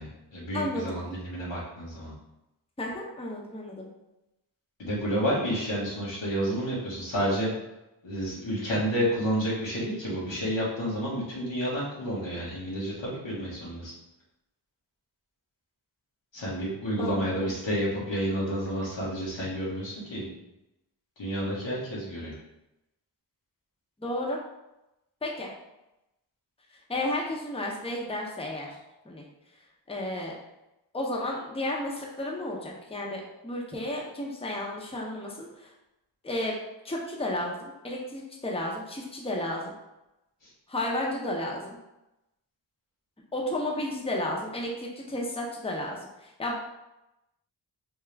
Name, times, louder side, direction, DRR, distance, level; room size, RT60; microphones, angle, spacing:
voice 1, 0.0-2.1 4.8-7.5 8.0-13.9 16.3-20.3 21.2-22.3 40.4-40.5, equal, 90° left, -7 dB, 1.5 m, -30 dB
voice 2, 0.5-1.0 2.8-3.9 17.0-17.5 24.0-24.4 25.2-25.5 26.7-28.8 29.0-29.2 29.9-30.4 30.9-35.7 36.2-36.6 36.8-39.7 40.7-41.8 43.3-46.6, left 1 dB, 15° left, -2 dB, 0.7 m, -32 dB
3.5 x 2.9 x 3.3 m, 0.92 s
wide cardioid pair, 70°, 43 cm